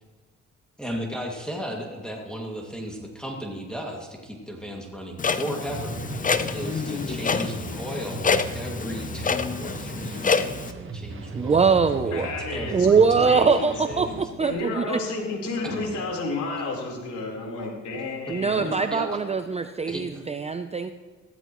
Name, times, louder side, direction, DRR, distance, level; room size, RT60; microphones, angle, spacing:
voice 1, 0.8-14.3 18.6-19.2 19.9-20.2, equal, 5° left, -1 dB, 2.2 m, -35 dB
Clock, 5.2-10.7, left 5 dB, 25° left, 0.7 m, -27 dB
sound 1, 5.7-14.3, right 3 dB, 40° right, 1.3 m, -38 dB
voice 2, 11.3-12.3 12.7-15.0 18.3-20.9, right 5 dB, 20° right, 9 dB, 0.5 m, -22 dB
voice 3, 12.1-12.9 13.1-18.9, left 3 dB, 80° left, -2 dB, 4.1 m, -31 dB
15.5 x 13.0 x 3.1 m, 1.4 s
cardioid pair, 90°, 30 cm